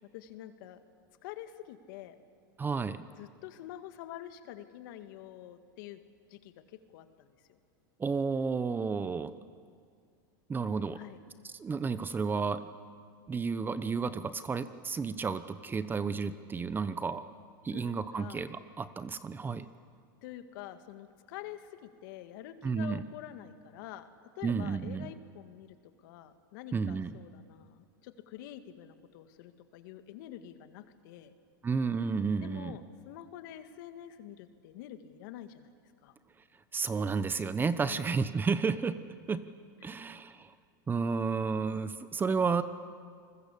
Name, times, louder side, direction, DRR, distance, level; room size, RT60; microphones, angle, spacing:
voice 1, 0.1-0.8 1.2-2.2 3.2-6.0 6.3-7.6 10.9-11.2 17.7-18.5 20.2-24.1 24.4-25.8 26.0-31.3 32.4-35.7 36.0-36.1 37.8-38.1, left 12 dB, 65° left, 9 dB, 2.0 m, -47 dB
voice 2, 2.6-3.0 8.0-9.3 10.5-11.0 11.4-12.7 13.3-17.2 17.6-19.7 22.6-23.0 24.4-25.1 26.7-27.2 31.6-32.8 36.7-39.0 39.3-39.4 39.8-40.5 40.9-42.6, right 5 dB, 15° right, 13 dB, 1.0 m, -32 dB
28.0 x 21.0 x 8.5 m, 2.1 s
supercardioid pair, 125°, 12 cm